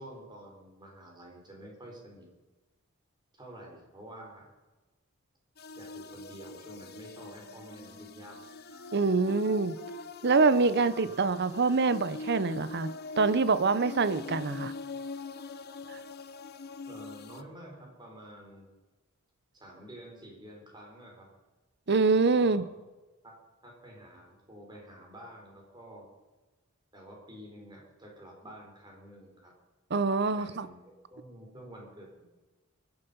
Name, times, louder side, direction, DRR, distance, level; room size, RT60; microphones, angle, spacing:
voice 1, 0.0-2.3 3.3-4.5 5.7-8.4 11.0-11.1 16.8-18.7 19.5-21.3 22.4-22.6 23.2-23.3 23.6-26.1 26.9-29.5 30.3-30.8 31.1-32.3, right 1 dB, 20° right, 0 dB, 4.4 m, -49 dB
sound 1, 5.6-17.4, left 3 dB, 50° left, 0.8 m, -43 dB
Wind instrument woodwind instrument, 7.2-14.7, left 1 dB, 70° right, 6.6 m, -54 dB
voice 2, 8.9-9.8 10.2-12.9 13.2-14.7 15.9-16.0 21.9-22.6 29.9-30.7, right 4 dB, 55° right, 14 dB, 0.8 m, -25 dB
22.5 x 11.0 x 5.5 m, 1.2 s
head